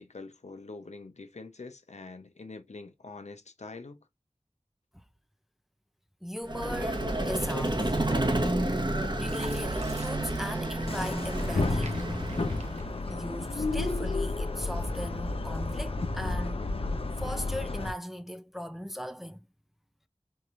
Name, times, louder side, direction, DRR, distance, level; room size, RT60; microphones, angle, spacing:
voice 1, 0.0-4.0, left 3 dB, 85° left, 0.8 m, -45 dB
voice 2, 6.2-7.9 9.2-11.9 13.1-16.7 17.2-19.4, equal, ahead, 0.5 m, -38 dB
Vehicle, 6.4-12.9, right 1 dB, 40° right, 1.1 m, -30 dB
Fill (with liquid), 9.3-13.7 14.1-14.9 15.4-15.6, right 2 dB, 80° right, 1.0 m, -49 dB
sound 1, 10.9-17.9, left 2 dB, 55° left, 0.6 m, -31 dB
4.6 x 3.1 x 2.5 m
wide cardioid pair, 50°, 11 cm